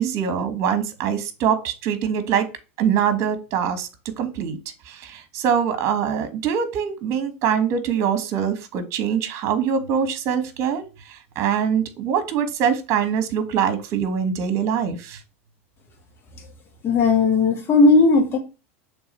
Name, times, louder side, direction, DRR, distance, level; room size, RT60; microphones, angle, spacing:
voice 1, 0.0-2.5 2.8-3.9 4.2-4.6 4.8-15.2, right 8 dB, 50° right, 1.4 m, -23 dB
voice 2, 16.8-18.4, left 3 dB, 35° left, 1.9 m, -16 dB
6.9 x 3.5 x 4.3 m
hypercardioid pair, 100°, 7 cm